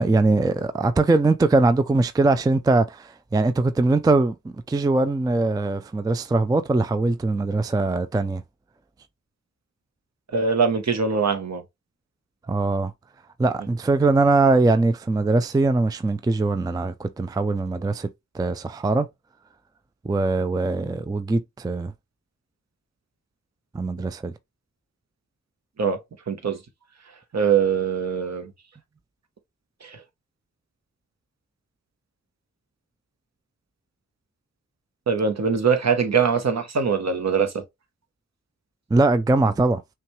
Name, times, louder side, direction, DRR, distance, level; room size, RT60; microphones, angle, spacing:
voice 1, 0.0-8.4 12.5-12.9 13.4-19.1 20.0-21.9 23.7-24.3 38.9-39.8, right 3 dB, 15° right, 0.3 m, -21 dB
voice 2, 10.3-11.6 25.8-26.0 26.3-26.6 27.3-28.5 29.8-30.0 35.1-37.6, right 6 dB, 55° right, 1.0 m, -22 dB
5.8 x 2.3 x 3.1 m
wide cardioid pair, 80°, 31 cm